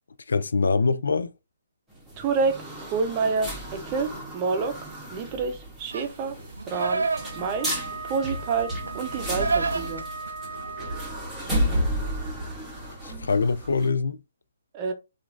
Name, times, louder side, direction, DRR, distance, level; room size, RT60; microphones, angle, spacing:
voice 1, 0.3-1.3 13.0-14.2, left 4 dB, 75° left, 0.3 m, -24 dB
sound 1, 1.9-13.9, equal, 5° right, 1.1 m, -33 dB
voice 2, 2.2-4.8 5.1-6.4 6.7-7.0 7.3-7.7 8.0-10.0 14.7-14.9, right 5 dB, 30° right, 0.6 m, -28 dB
Livestock farm animals working animals, 5.9-11.0, right 4 dB, 80° right, 0.3 m, -31 dB
Wind instrument woodwind instrument, 6.7-11.4, right 3 dB, 25° left, 1.3 m, -39 dB
3.0 x 2.5 x 2.5 m
hypercardioid pair, 140°, 0 cm